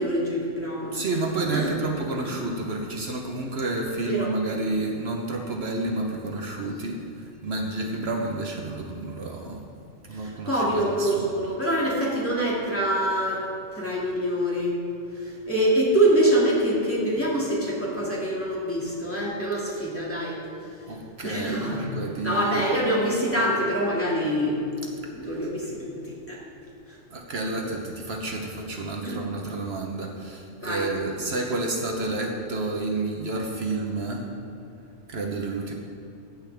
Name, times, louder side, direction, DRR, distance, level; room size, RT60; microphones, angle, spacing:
voice 1, 0.0-1.2 1.5-1.7 2.2-2.3 4.1-4.3 10.2-13.4 13.7-14.8 15.2-20.4 21.2-21.9 22.2-24.6 25.1-26.4 26.9-27.0 29.0-29.2 30.6-30.9, right 1 dB, 10° left, -6 dB, 2.3 m, -25 dB
voice 2, 0.9-9.6 10.1-11.3 20.9-22.6 27.1-34.3 35.1-35.7, right 2 dB, 65° right, 1 dB, 1.2 m, -30 dB
15.0 x 8.6 x 3.5 m, 2.7 s
omnidirectional pair, 1.2 m